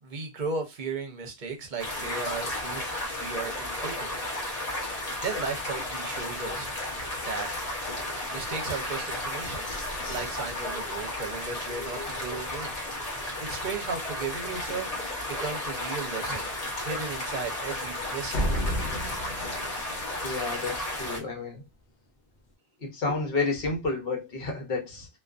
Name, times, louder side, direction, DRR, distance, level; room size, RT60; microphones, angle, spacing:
voice 1, 0.0-4.2 5.2-6.7 7.2-7.7 8.3-9.6 10.1-14.9 15.3-16.5 16.8-18.6, right 4 dB, 55° right, 0.7 m, -36 dB
sound 1, 1.8-21.2, left 1 dB, 40° left, 0.8 m, -33 dB
sound 2, 9.5-12.9 13.4-13.5 13.9-14.3 14.6-14.7 15.2-15.3 18.3-21.0, equal, 85° left, 0.9 m, -36 dB
voice 2, 20.2-21.6 22.8-25.1, left 3 dB, 60° left, 1.0 m, -30 dB
2.4 x 2.3 x 2.3 m
omnidirectional pair, 1.1 m